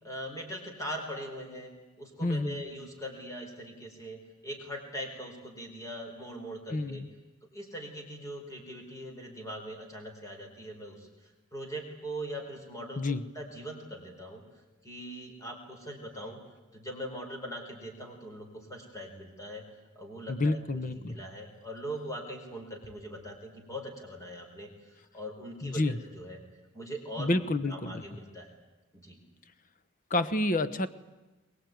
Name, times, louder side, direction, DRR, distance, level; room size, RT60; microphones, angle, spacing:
voice 1, 0.0-1.7 2.0-7.0 7.5-11.1 11.5-14.4 14.8-16.4 16.7-19.6 19.9-24.7 25.1-26.4 26.7-27.3 27.7-28.5 28.9-29.2, equal, 15° left, 2 dB, 4.5 m, -41 dB
voice 2, 2.2-2.6 6.7-7.1 13.0-13.2 20.3-21.2 25.6-26.0 27.2-28.0 30.1-30.9, left 2 dB, 40° left, 14 dB, 1.0 m, -29 dB
22.5 x 21.0 x 9.4 m, 1.1 s
head